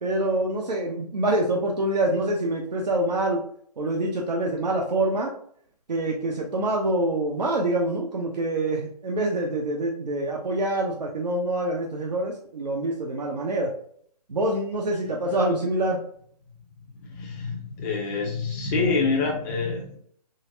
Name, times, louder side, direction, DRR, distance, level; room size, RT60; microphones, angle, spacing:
voice 1, 0.0-3.4 3.8-5.3 5.9-13.7 14.3-16.0, right 1 dB, 80° right, -1 dB, 0.7 m, -26 dB
voice 2, 17.1-19.9, left 4 dB, 25° left, -1 dB, 0.5 m, -26 dB
3.9 x 2.0 x 2.6 m, 0.62 s
figure-of-eight pair, 140°, 21 cm